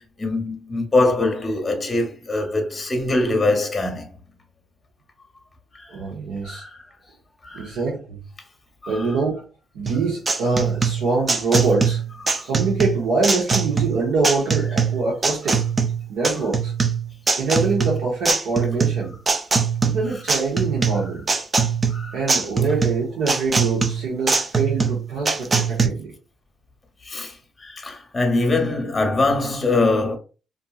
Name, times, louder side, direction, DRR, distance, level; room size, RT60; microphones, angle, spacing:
voice 1, 0.2-4.1 6.4-6.8 7.4-7.7 8.9-9.0 21.9-22.2 27.1-27.3 27.6-30.2, left 2 dB, 25° left, 0.8 m, -22 dB
voice 2, 5.9-6.6 7.5-8.2 8.9-9.4 9.7-12.0 12.4-15.6 16.1-16.7 17.4-19.2 19.8-21.3 22.1-26.1, right 3 dB, 85° right, 0.8 m, -24 dB
sound 1, 9.9-25.9, right 5 dB, 30° right, 0.5 m, -22 dB
2.7 x 2.5 x 2.3 m
cardioid pair, 90°, 0 cm